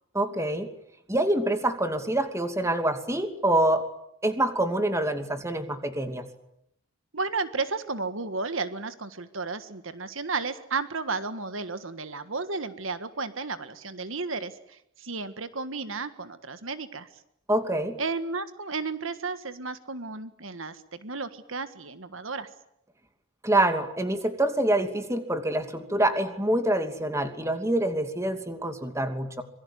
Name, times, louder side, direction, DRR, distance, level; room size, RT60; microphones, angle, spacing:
voice 1, 0.1-0.7 1.1-3.9 4.2-6.3 17.5-18.0 23.4-29.4, right 1 dB, 15° right, 7 dB, 2.7 m, -26 dB
voice 2, 7.1-17.1 18.0-22.5, right 4 dB, 70° right, 11 dB, 1.6 m, -33 dB
26.5 x 23.0 x 9.5 m, 0.76 s
head